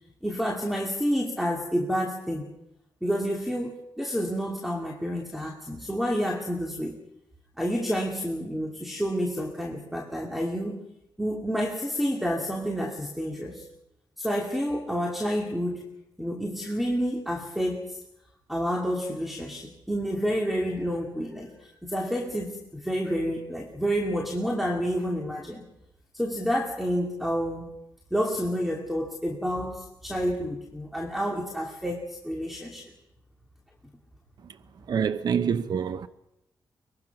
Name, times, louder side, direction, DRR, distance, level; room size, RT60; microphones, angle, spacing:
voice 1, 0.2-2.5 3.0-7.0 7.6-10.8 11.2-13.6 14.2-15.8 16.2-18.0 18.5-25.7 26.1-27.7 28.1-32.9, equal, ahead, 2.7 m, -29 dB
voice 2, 34.9-36.1, right 7 dB, 60° right, 0.8 m, -26 dB
23.5 x 21.5 x 6.0 m
cardioid pair, 90°, 8 cm